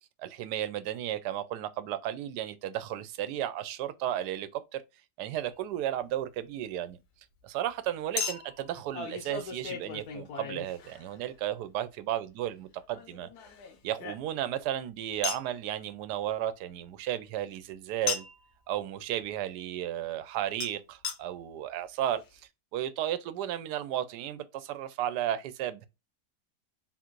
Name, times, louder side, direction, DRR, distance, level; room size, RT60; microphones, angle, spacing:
voice 1, 0.2-4.8 5.2-7.0 7.4-13.3 13.8-18.2 18.7-22.2 22.7-25.9, right 11 dB, 85° right, 1.1 m, -34 dB
Chink clink, 5.3-5.5 8.2-11.3 12.9-14.6 15.2-15.5 18.1-18.5 20.6-20.7 21.0-21.2 21.8-21.9 22.1-22.2, left 6 dB, 70° left, 1.3 m, -37 dB
3.9 x 2.4 x 4.4 m
omnidirectional pair, 1.7 m